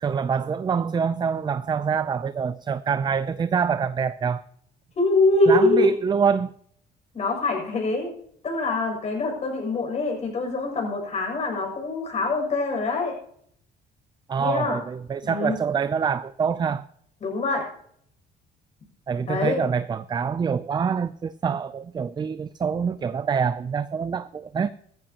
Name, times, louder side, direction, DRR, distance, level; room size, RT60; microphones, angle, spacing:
voice 1, 0.0-4.4 5.5-6.5 14.3-16.9 19.1-24.7, right 6 dB, 25° right, 0.5 m, -25 dB
voice 2, 5.0-5.9 7.1-8.1 8.4-13.2 14.4-14.8 15.2-15.6 17.2-17.7 19.3-19.7, left 2 dB, 40° left, 6.9 m, -24 dB
15.5 x 14.5 x 2.9 m
cardioid pair, 110°, 17 cm